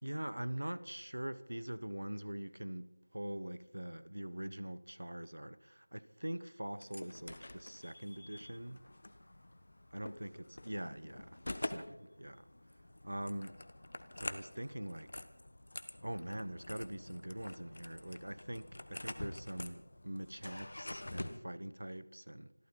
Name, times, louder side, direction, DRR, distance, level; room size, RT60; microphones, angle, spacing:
voice 1, 0.0-8.8 9.9-12.4 13.0-13.6 14.2-15.2 16.0-22.5, right 1 dB, 85° right, 0.9 m, -43 dB
sound 1, 6.8-21.4, left 1 dB, 55° left, 1.2 m, -47 dB
26.5 x 13.0 x 4.3 m
figure-of-eight pair, 175°, 0 cm